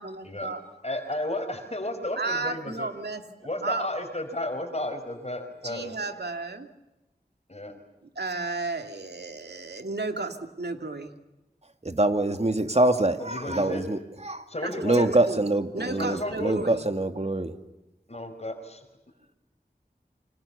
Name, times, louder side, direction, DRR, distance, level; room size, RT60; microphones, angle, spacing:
voice 1, 0.0-0.6 2.2-3.2 3.6-3.9 5.6-6.7 8.2-11.1 14.6-15.4 15.7-16.8, right 3 dB, 85° right, 6 dB, 2.7 m, -33 dB
voice 2, 0.8-2.9 3.4-6.0 7.5-7.8 13.2-13.8 14.5-15.1 16.0-16.5 18.1-18.8, left 1 dB, 40° left, 6 dB, 4.8 m, -33 dB
voice 3, 11.8-14.0 14.3-14.4 14.8-17.5, right 2 dB, 40° right, 7 dB, 2.5 m, -24 dB
29.5 x 25.5 x 7.0 m, 0.99 s
wide cardioid pair, 55°, 17 cm